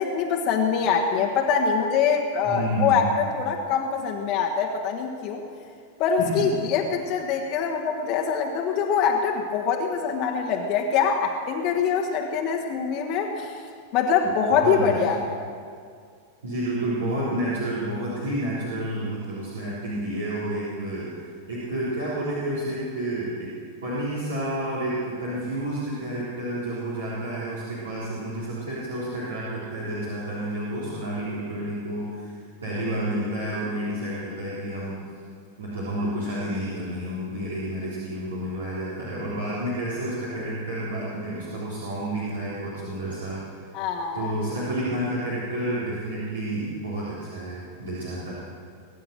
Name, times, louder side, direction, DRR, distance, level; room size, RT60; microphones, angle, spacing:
voice 1, 0.0-3.1 3.3-5.4 6.0-13.6 13.9-15.2 43.7-44.3, left 6 dB, 40° left, 1 dB, 1.4 m, -24 dB
voice 2, 2.4-3.2 6.2-6.4 14.5-14.9 16.4-21.2 21.5-23.5 23.8-32.3 32.6-35.0 35.6-43.5 44.1-48.3, right 1 dB, 70° right, -8 dB, 3.7 m, -30 dB
22.0 x 9.5 x 6.7 m, 2.2 s
figure-of-eight pair, 90°, 0 cm